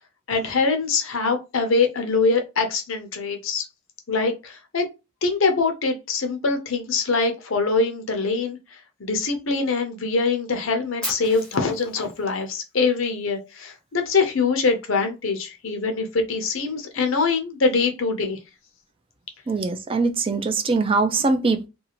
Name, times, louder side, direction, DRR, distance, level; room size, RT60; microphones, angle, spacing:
voice 1, 0.3-3.6 4.1-4.9 5.2-18.4, left 4 dB, 75° left, 0.7 m, -23 dB
Fire, 11.0-13.1, left 1 dB, 5° left, 0.8 m, -36 dB
voice 2, 19.5-21.7, right 3 dB, 25° right, 0.4 m, -22 dB
2.6 x 2.4 x 2.9 m
head